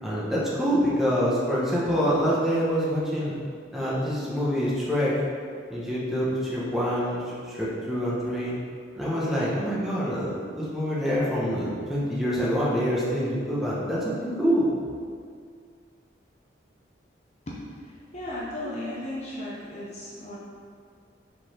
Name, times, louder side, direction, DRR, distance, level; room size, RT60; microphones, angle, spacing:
voice 1, 0.0-3.3 3.7-5.2 5.7-8.5 8.9-14.7, equal, ahead, -8 dB, 1.0 m, -26 dB
voice 2, 17.5-20.4, left 1 dB, 35° left, -6 dB, 0.7 m, -36 dB
5.1 x 4.0 x 4.9 m, 2.2 s
head